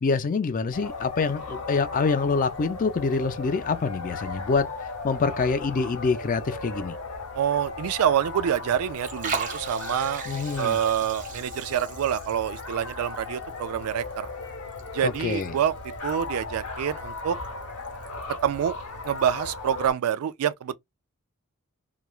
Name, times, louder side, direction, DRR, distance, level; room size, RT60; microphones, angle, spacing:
voice 1, 0.0-4.7 5.0-6.9 10.3-10.8 15.0-15.5, left 4 dB, 35° left, 0.4 m, -26 dB
sound 1, 0.7-19.9, left 3 dB, 85° left, 0.8 m, -37 dB
voice 2, 7.3-10.3 10.6-14.3 14.9-15.7 16.0-17.4 18.4-18.7 19.0-20.8, right 9 dB, 70° right, 0.3 m, -26 dB
Liquid, 8.1-19.5, right 5 dB, 35° right, 0.7 m, -41 dB
3.0 x 2.2 x 2.3 m
head